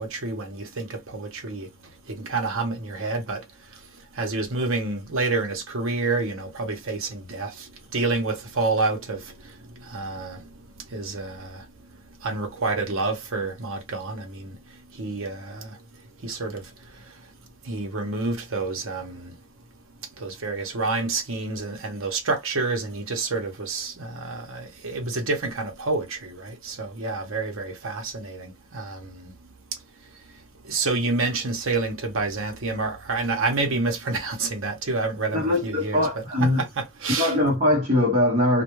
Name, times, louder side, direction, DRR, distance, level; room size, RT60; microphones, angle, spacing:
voice 1, 0.0-17.3 17.6-19.4 20.2-29.5 30.3-37.4, right 3 dB, 65° right, 0.8 m, -29 dB
voice 2, 35.3-36.6 37.2-38.6, left 1 dB, 30° right, 0.7 m, -21 dB
2.2 x 2.2 x 2.9 m
head